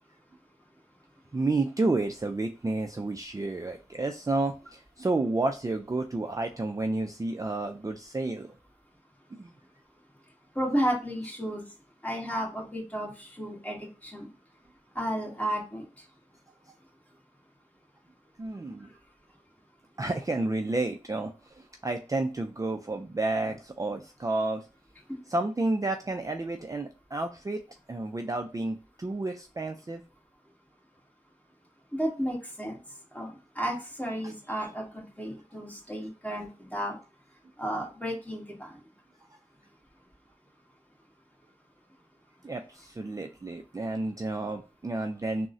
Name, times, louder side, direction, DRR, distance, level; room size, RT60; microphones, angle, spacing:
voice 1, 1.3-8.6 9.3-9.5 18.4-18.9 20.0-24.7 25.3-27.6 27.9-30.0 34.2-34.3 42.4-45.5, right 2 dB, 25° right, 5 dB, 0.3 m, -31 dB
voice 2, 10.5-11.6 12.0-14.3 14.9-15.8 25.1-25.2 31.9-32.8 33.1-37.0 37.6-38.7, equal, 10° left, -2 dB, 1.5 m, -32 dB
3.6 x 2.1 x 2.6 m, 0.33 s
wide cardioid pair, 45°, 13 cm